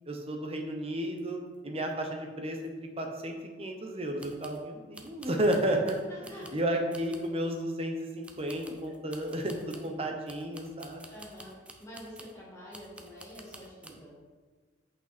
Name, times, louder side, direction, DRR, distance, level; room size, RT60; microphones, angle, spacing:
voice 1, 0.1-6.0 6.5-11.1, right 1 dB, 30° right, 3 dB, 1.0 m, -32 dB
sound 1, 1.2-1.3 1.5-1.6 2.0-2.1 2.6-2.7 4.2-4.6 4.9-6.6 6.9-7.4 8.2-9.9 10.3-12.4 12.7-14.0, right 1 dB, 5° right, 0.6 m, -51 dB
voice 2, 6.1-6.5 11.1-11.5 11.8-14.2, equal, 15° left, -6 dB, 2.0 m, -47 dB
8.2 x 5.6 x 4.3 m, 1.4 s
head